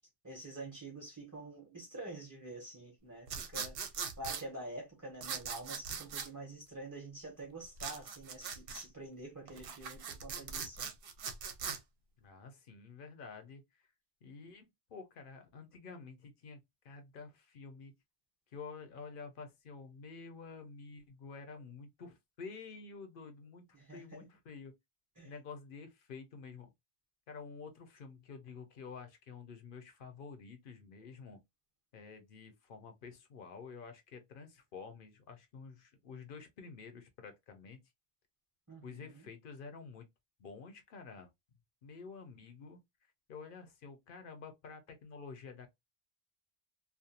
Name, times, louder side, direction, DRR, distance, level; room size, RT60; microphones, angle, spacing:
voice 1, 0.2-3.8 4.2-10.9 23.7-24.2 25.2-25.3 38.7-39.3, right 2 dB, 20° right, 0.7 m, -47 dB
sound 1, 3.3-4.4 5.2-6.3 7.8-8.9 9.5-11.8, right 6 dB, 65° right, 0.7 m, -40 dB
voice 2, 12.2-13.6 14.2-16.6 16.8-17.9 18.5-23.7 23.9-24.7 25.2-26.7 27.3-31.4 31.9-37.8 38.8-40.1 40.4-41.3 41.8-42.8 43.3-45.7, left 5 dB, 60° left, 0.8 m, -49 dB
2.5 x 2.1 x 2.6 m
omnidirectional pair, 1.1 m